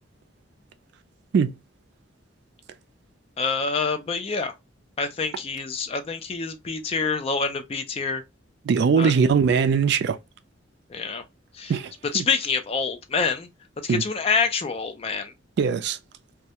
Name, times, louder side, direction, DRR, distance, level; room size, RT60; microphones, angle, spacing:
voice 1, 3.4-4.5 5.0-8.2 9.0-9.1 10.9-11.2 11.5-11.7 12.1-13.5 13.8-15.3, left 5 dB, 30° left, 0.4 m, -26 dB
voice 2, 8.6-10.2 11.7-12.3 13.9-14.0 15.6-16.0, right 6 dB, 60° right, 0.3 m, -21 dB
2.3 x 2.1 x 2.7 m
head